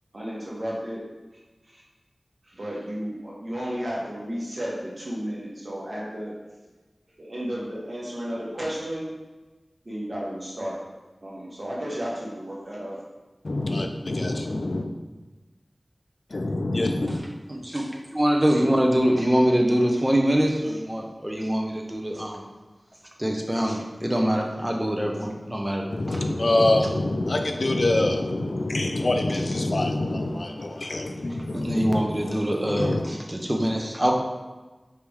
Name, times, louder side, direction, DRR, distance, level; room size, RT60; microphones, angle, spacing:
voice 1, 0.1-1.0 1.7-1.8 2.5-6.3 7.2-9.0 9.8-10.8 11.2-13.0, equal, 50° right, -5 dB, 1.2 m, -33 dB
voice 2, 13.4-14.9 16.3-17.2 25.9-33.0, left 2 dB, 65° left, 4 dB, 0.3 m, -25 dB
voice 3, 17.5-22.4 23.2-26.2 31.5-34.1, equal, 15° right, 0 dB, 0.6 m, -24 dB
4.7 x 2.9 x 3.5 m, 1.2 s
wide cardioid pair, 70°, 0 cm